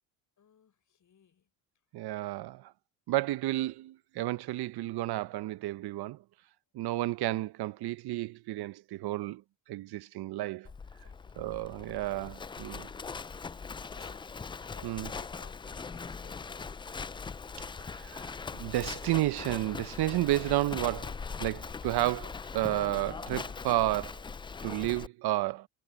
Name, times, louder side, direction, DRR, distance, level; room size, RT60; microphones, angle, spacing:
voice 1, 0.4-1.5 11.0-11.4 13.8-14.2 14.6-16.6, left 7 dB, 40° left, 5.7 m, -59 dB
voice 2, 1.9-2.7 3.1-6.2 6.7-9.4 9.7-10.7 11.4-12.9 14.8-15.1 17.9-21.1 21.4-24.2 24.6-25.7, right 16 dB, 55° right, 0.9 m, -32 dB
Livestock farm animals working animals, 10.6-25.1, left 5 dB, 10° left, 0.3 m, -41 dB
supercardioid pair, 75°, 45 cm